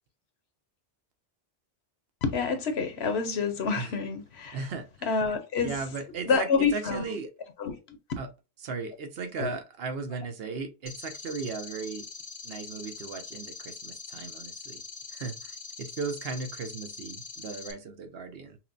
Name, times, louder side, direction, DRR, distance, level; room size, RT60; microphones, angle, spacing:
voice 1, 2.2-4.6 5.0-5.8 6.3-7.0 7.6-8.0 9.4-9.5, left 5 dB, 70° left, 1.0 m, -27 dB
voice 2, 4.5-5.1 5.6-7.3 8.2-8.3 8.6-12.0 12.4-14.8 15.1-18.6, right 4 dB, 65° right, 0.9 m, -36 dB
sound 1, 10.9-17.7, left 4 dB, 35° left, 0.4 m, -43 dB
5.8 x 2.1 x 2.6 m
omnidirectional pair, 1.1 m